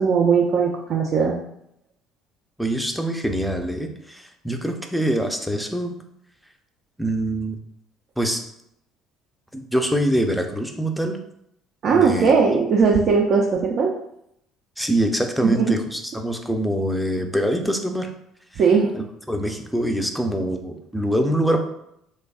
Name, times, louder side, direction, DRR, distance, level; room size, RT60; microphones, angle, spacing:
voice 1, 0.0-1.4 11.8-13.9 15.4-15.7 18.6-18.9, right 5 dB, 50° right, -1 dB, 0.5 m, -18 dB
voice 2, 2.6-5.9 7.0-7.6 8.2-8.4 9.5-11.2 11.9-12.3 14.8-18.1 18.9-21.6, right 1 dB, ahead, 4 dB, 0.5 m, -24 dB
3.2 x 2.2 x 3.5 m, 0.77 s
figure-of-eight pair, 55°, 0 cm